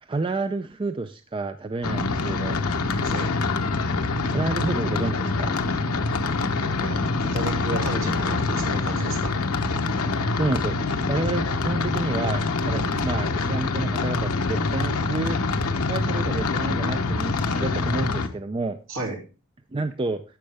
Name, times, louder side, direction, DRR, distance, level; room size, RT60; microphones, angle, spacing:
voice 1, 0.0-2.6 4.3-5.6 10.4-15.4 15.9-18.8 19.7-20.2, right 3 dB, 25° right, 9 dB, 0.4 m, -29 dB
sound 1, 1.8-18.3, left 3 dB, 80° left, 1.0 m, -25 dB
voice 2, 3.0-3.3 6.7-9.3 18.9-19.2, right 2 dB, 60° right, 0 dB, 3.0 m, -33 dB
11.5 x 7.6 x 3.4 m, 0.33 s
head